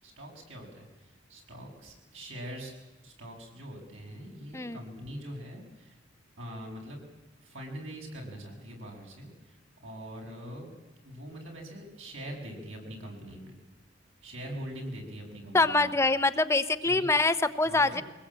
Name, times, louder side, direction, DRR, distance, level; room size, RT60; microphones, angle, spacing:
voice 1, 0.0-2.7 3.0-6.0 6.4-7.0 7.4-10.7 11.0-13.6 14.2-15.9 16.8-17.1 17.6-18.0, equal, 85° right, 0 dB, 7.4 m, -43 dB
voice 2, 15.5-18.0, left 3 dB, 15° left, 10 dB, 0.7 m, -25 dB
23.5 x 20.0 x 8.9 m, 1.1 s
head